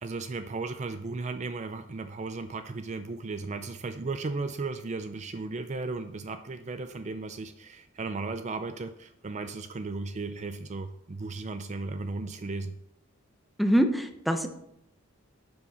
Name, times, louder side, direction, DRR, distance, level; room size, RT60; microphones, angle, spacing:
voice 1, 0.0-12.7, right 3 dB, 35° right, 9 dB, 0.4 m, -35 dB
voice 2, 13.6-14.5, equal, ahead, 6 dB, 0.8 m, -24 dB
12.0 x 7.4 x 4.2 m, 0.78 s
head